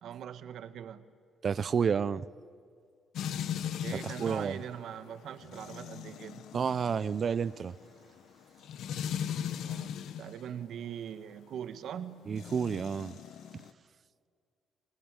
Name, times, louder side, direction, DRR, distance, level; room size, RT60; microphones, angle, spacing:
voice 1, 0.0-1.1 3.8-6.5 9.6-12.3, right 9 dB, 75° right, 12 dB, 1.3 m, -42 dB
voice 2, 1.4-2.3 4.0-4.6 6.5-7.7 12.3-13.1 13.5-13.6, right 6 dB, 50° right, 18 dB, 0.6 m, -30 dB
sound 1, 3.1-10.4 12.3-13.7, left 9 dB, 80° left, 1.1 m, -39 dB
26.5 x 21.5 x 9.0 m, 2.2 s
cardioid pair, 90°, 0 cm